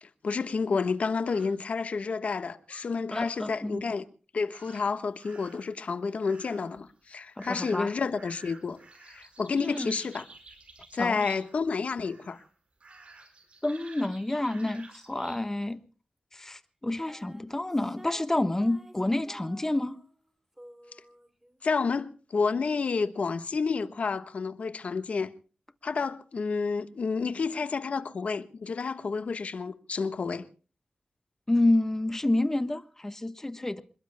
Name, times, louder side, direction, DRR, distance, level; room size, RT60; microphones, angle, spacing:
voice 1, 0.0-4.0 4.3-8.8 9.1-10.2 10.9-12.4 21.6-25.3 25.8-30.5, left 4 dB, 75° left, 1.3 m, -30 dB
sound 1, 1.2-1.5 2.7-2.8 3.1-3.4 4.3-4.9 5.2-5.9, right 1 dB, 45° right, 6.3 m, -55 dB
voice 2, 3.1-3.9 7.4-7.9 9.6-10.0 11.0-11.2 13.6-15.8 16.3-20.0 31.5-33.8, left 2 dB, 20° left, 1.2 m, -29 dB
sound 2, 5.2-5.7 6.2-6.8 7.4-11.7 12.0-12.5 12.8-15.5, right 3 dB, 60° right, 5.1 m, -51 dB
sound 3, 17.1-20.3 20.6-21.7, right 1 dB, 15° right, 2.7 m, -52 dB
27.5 x 21.0 x 2.2 m
wide cardioid pair, 85°, 2 cm